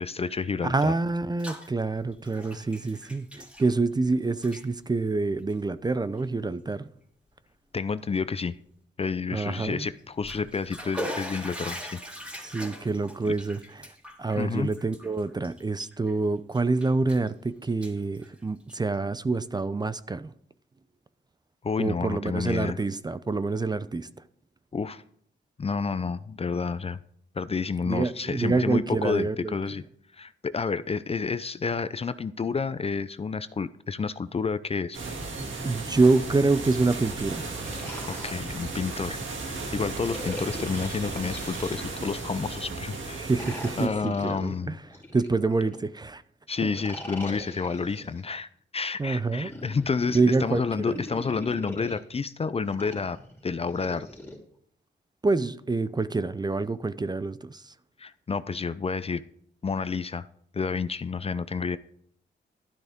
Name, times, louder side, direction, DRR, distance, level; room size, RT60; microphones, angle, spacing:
voice 1, 0.0-0.9 7.7-8.6 9.0-12.0 14.4-14.7 21.6-22.8 24.7-25.0 25.6-27.0 27.4-29.8 30.1-35.0 38.1-43.3 43.8-44.7 46.5-54.1 58.0-59.2 59.6-60.3 60.5-61.8, left 5 dB, 30° left, 0.5 m, -30 dB
voice 2, 0.6-6.9 9.3-9.9 12.4-13.9 14.2-20.3 21.8-24.1 27.9-29.5 35.6-37.5 43.2-44.8 45.1-46.2 46.6-46.7 49.0-49.5 50.1-51.0 55.2-57.7, right 3 dB, 20° right, 0.5 m, -26 dB
Bathtub (filling or washing), 1.1-1.7 2.0-4.1 4.3-4.6 5.4-5.5 6.2-6.3 6.7-6.8 10.0-16.1 16.5-17.3 17.6-18.9, equal, 5° right, 3.4 m, -40 dB
sound 1, 34.9-43.9, right 3 dB, 90° right, 2.4 m, -35 dB
sound 2, 37.4-39.2 40.0-42.4 43.2-45.8 46.6-48.2 49.2-52.0 52.7-54.3, left 1 dB, 10° left, 3.3 m, -42 dB
12.5 x 11.5 x 3.6 m
cardioid pair, 95°, 19 cm